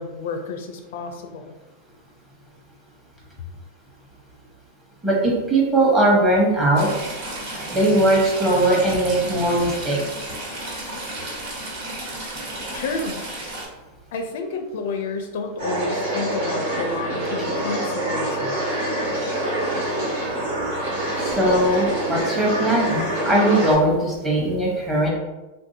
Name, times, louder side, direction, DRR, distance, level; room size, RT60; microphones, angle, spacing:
voice 1, 0.0-1.5 12.7-13.2 14.1-18.6, left 4 dB, 70° left, 5 dB, 0.4 m, -30 dB
voice 2, 5.0-6.9 7.7-10.0 21.3-25.1, right 1 dB, 15° right, -4 dB, 1.0 m, -19 dB
Stream / Trickle dribble, 6.7-13.6, right 1 dB, 55° right, 1.2 m, -33 dB
sound 1, 15.6-23.7, right 1 dB, 85° right, 1.5 m, -25 dB
3.4 x 2.6 x 2.7 m, 1.1 s
supercardioid pair, 145°, 0 cm